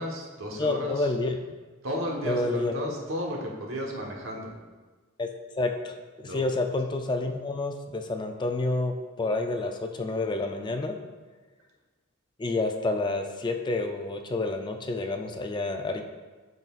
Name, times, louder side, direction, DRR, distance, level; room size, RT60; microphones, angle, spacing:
voice 1, 0.0-1.0 1.8-4.5 6.2-6.4, equal, 75° right, -1 dB, 1.2 m, -33 dB
voice 2, 0.6-1.5 2.2-2.7 5.2-5.3 5.6-5.9 6.2-11.0 12.4-16.0, left 2 dB, 20° left, 5 dB, 0.4 m, -29 dB
10.5 x 4.0 x 2.4 m, 1.3 s
head